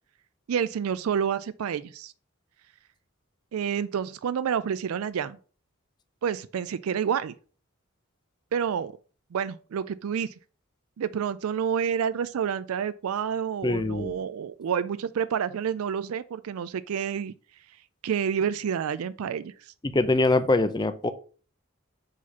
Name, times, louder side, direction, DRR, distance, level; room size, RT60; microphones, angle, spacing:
voice 1, 0.5-2.1 3.5-5.4 6.2-7.3 8.5-8.9 9.3-10.3 11.0-17.3 18.0-19.5, right 7 dB, 90° right, 0.4 m, -29 dB
voice 2, 13.6-14.2 19.8-21.1, left 2 dB, 20° left, 0.4 m, -23 dB
4.9 x 4.2 x 5.7 m
head